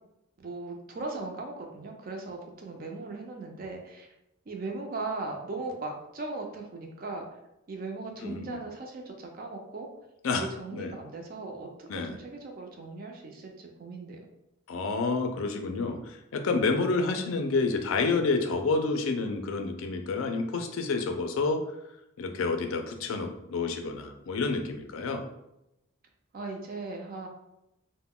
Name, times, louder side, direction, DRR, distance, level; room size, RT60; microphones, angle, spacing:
voice 1, 0.4-4.1 4.5-7.2 7.7-9.9 10.3-14.2 26.3-27.3, right 3 dB, 45° right, 2 dB, 0.4 m, -38 dB
voice 2, 8.2-8.6 10.2-10.4 10.7-10.9 11.9-12.1 14.7-21.6 22.2-25.2, left 3 dB, 75° left, 5 dB, 0.4 m, -29 dB
2.2 x 2.1 x 3.6 m, 0.87 s
head